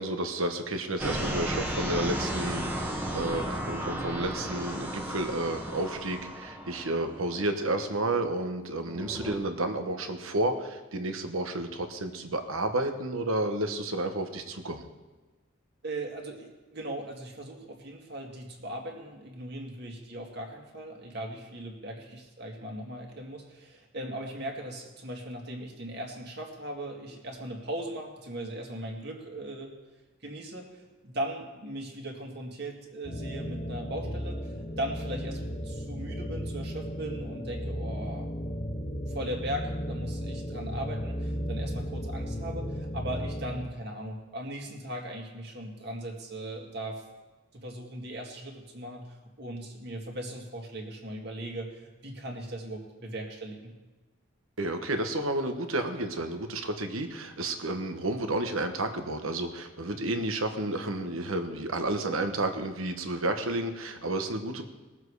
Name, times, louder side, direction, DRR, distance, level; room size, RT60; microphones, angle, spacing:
voice 1, 0.0-14.8 54.6-64.7, right 1 dB, 85° right, 6 dB, 1.3 m, -31 dB
sound 1, 1.0-8.2 8.8-9.4, right 1 dB, 10° right, 1.2 m, -34 dB
voice 2, 15.8-29.7 30.2-38.3 39.1-47.0 47.5-49.1 49.4-53.7 59.9-60.2, right 1 dB, 50° right, 1 dB, 2.1 m, -38 dB
sound 2, 33.0-43.7, equal, 30° left, 0.7 m, -35 dB
20.0 x 7.5 x 4.9 m, 1.2 s
head